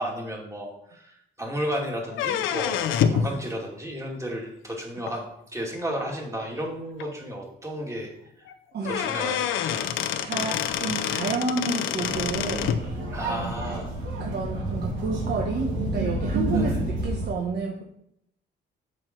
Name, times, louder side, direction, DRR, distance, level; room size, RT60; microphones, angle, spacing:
voice 1, 0.0-5.2 5.5-8.1 8.8-9.9 13.1-13.9 16.5-16.8, equal, 15° right, -1 dB, 2.7 m, -33 dB
sound 1, 2.1-3.3 5.1-5.2 6.1-6.2 6.6-6.7 7.0-7.1 8.5-8.6 8.8-12.8, left 9 dB, 85° left, 0.7 m, -27 dB
voice 2, 8.7-9.1 10.2-12.7 13.2-13.8 14.2-17.8, right 4 dB, 55° right, 1 dB, 1.3 m, -30 dB
sound 2, 12.0-17.3, right 1 dB, 75° right, 3.1 m, -29 dB
7.6 x 6.3 x 4.6 m, 0.77 s
cardioid pair, 90°, 20 cm